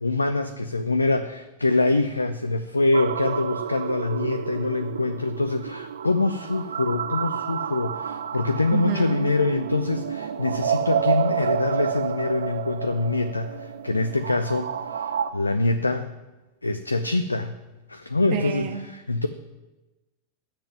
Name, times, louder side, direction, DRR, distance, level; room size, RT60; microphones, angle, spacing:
voice 1, 0.0-16.1 16.6-17.6 17.9-19.3, left 3 dB, 80° left, 10 dB, 0.5 m, -25 dB
sound 1, 2.9-15.3, right 8 dB, 65° right, 0.6 m, -30 dB
voice 2, 8.7-9.2 18.3-18.8, right 7 dB, 45° right, 5 dB, 1.6 m, -28 dB
10.0 x 7.5 x 9.6 m, 1.1 s
figure-of-eight pair, 90°, 0 cm